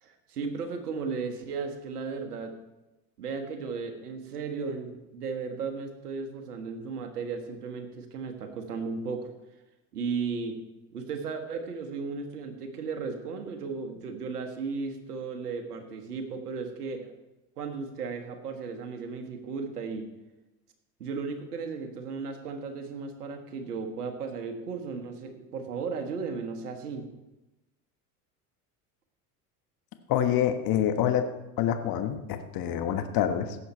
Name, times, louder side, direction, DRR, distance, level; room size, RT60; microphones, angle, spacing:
voice 1, 0.0-2.5 3.2-9.3 9.9-10.6 10.9-17.1 17.6-20.1 21.0-27.1, right 5 dB, 90° right, 6 dB, 1.6 m, -35 dB
voice 2, 30.1-31.3 31.6-33.6, left 10 dB, 50° left, 8 dB, 1.3 m, -26 dB
17.0 x 7.4 x 4.4 m, 1.0 s
hypercardioid pair, 75°, 45 cm